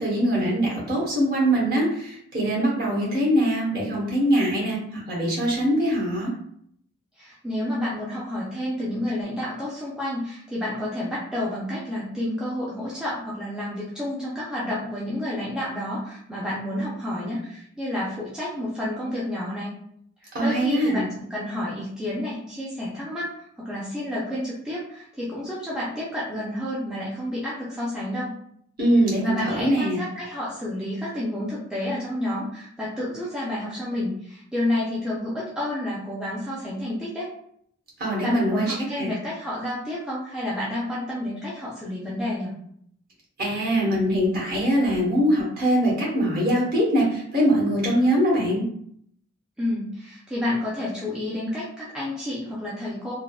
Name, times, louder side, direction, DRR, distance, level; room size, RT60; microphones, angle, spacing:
voice 1, 0.0-6.3 20.3-21.0 28.8-30.0 38.0-39.1 43.4-48.6, equal, 45° right, -4 dB, 1.0 m, -22 dB
voice 2, 7.2-19.8 20.4-28.3 29.2-37.3 38.2-42.5 49.6-53.2, left 1 dB, 5° right, -8 dB, 0.4 m, -30 dB
3.3 x 2.0 x 2.3 m, 0.68 s
head